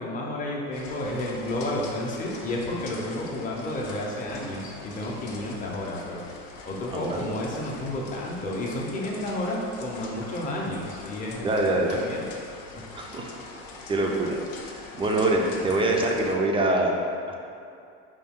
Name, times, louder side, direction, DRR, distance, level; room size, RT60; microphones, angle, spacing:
voice 1, 0.0-6.3 6.7-12.3, left 1 dB, 25° left, -3 dB, 0.7 m, -31 dB
sound 1, 0.7-16.3, left 3 dB, 70° left, 0.7 m, -43 dB
voice 2, 11.4-12.0 12.9-13.3 13.9-14.4 14.7-17.0 17.3-17.4, right 2 dB, 15° right, 0 dB, 0.3 m, -24 dB
5.3 x 2.3 x 3.5 m, 2.5 s
supercardioid pair, 115°, 34 cm